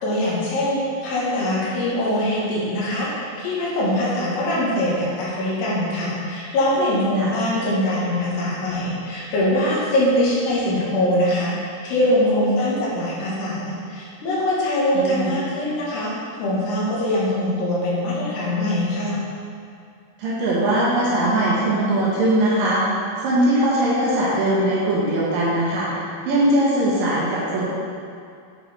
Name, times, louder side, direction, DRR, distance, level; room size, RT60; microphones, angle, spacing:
voice 1, 0.0-19.2, left 1 dB, 70° left, -7 dB, 3.3 m, -22 dB
voice 2, 14.9-15.4 20.2-22.8 23.2-25.9 26.3-27.6, right 1 dB, 75° right, -7 dB, 2.1 m, -20 dB
8.4 x 5.1 x 3.2 m, 2.3 s
omnidirectional pair, 5.2 m